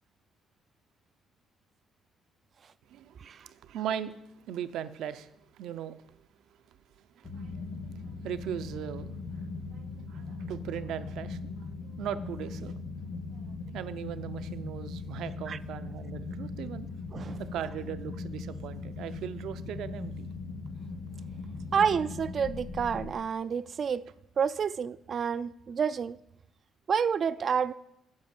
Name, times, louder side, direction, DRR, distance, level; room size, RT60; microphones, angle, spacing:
voice 1, 2.9-6.0 6.9-12.8 13.1-16.9 17.4-20.3, right 9 dB, 75° right, 0.6 m, -39 dB
sound 1, 7.2-23.1, left 4 dB, 65° left, 1.8 m, -39 dB
voice 2, 21.7-24.0 24.4-26.2 26.9-27.7, right 7 dB, 45° right, 0.3 m, -29 dB
9.6 x 6.5 x 8.8 m
cardioid pair, 130°, 0 cm